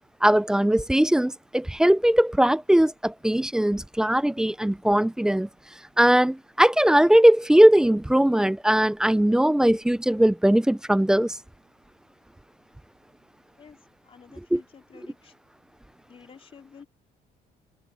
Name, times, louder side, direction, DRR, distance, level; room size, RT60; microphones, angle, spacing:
voice 1, 0.2-5.5 6.0-11.4 14.5-14.6, right 1 dB, 5° right, 0.3 m, -20 dB
voice 2, 13.6-15.3 16.1-16.9, left 6 dB, 35° left, 4.1 m, -50 dB
cardioid pair, 110°, 17 cm